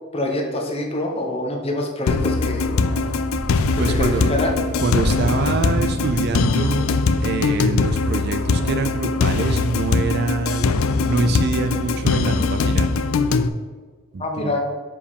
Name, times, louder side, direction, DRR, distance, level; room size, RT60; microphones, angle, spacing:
voice 1, 0.1-2.7 3.9-4.5 14.2-14.6, left 1 dB, 25° left, 1 dB, 0.8 m, -25 dB
sound 1, 2.1-13.5, left 4 dB, 70° left, 0.4 m, -21 dB
sound 2, 2.3-6.6, right 1 dB, 20° right, 0.9 m, -30 dB
voice 2, 3.8-4.4 4.8-10.7 11.1-12.9 14.1-14.5, right 3 dB, 45° right, 7 dB, 0.4 m, -25 dB
4.9 x 4.7 x 5.3 m, 1.5 s
head